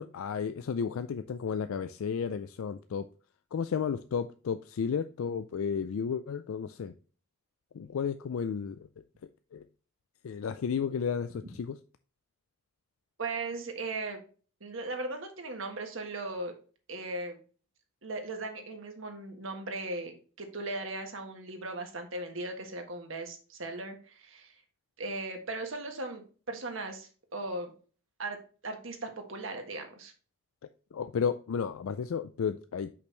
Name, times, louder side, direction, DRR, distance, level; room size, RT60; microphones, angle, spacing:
voice 1, 0.0-3.1 3.5-6.9 7.7-8.8 9.5-9.6 10.2-11.8 30.9-32.9, left 6 dB, 90° left, 10 dB, 0.4 m, -33 dB
voice 2, 13.2-14.2 14.6-16.5 16.9-17.4 18.0-24.5 25.0-27.7 28.2-30.1, right 2 dB, 75° right, 4 dB, 1.4 m, -38 dB
6.1 x 5.8 x 3.2 m, 0.38 s
head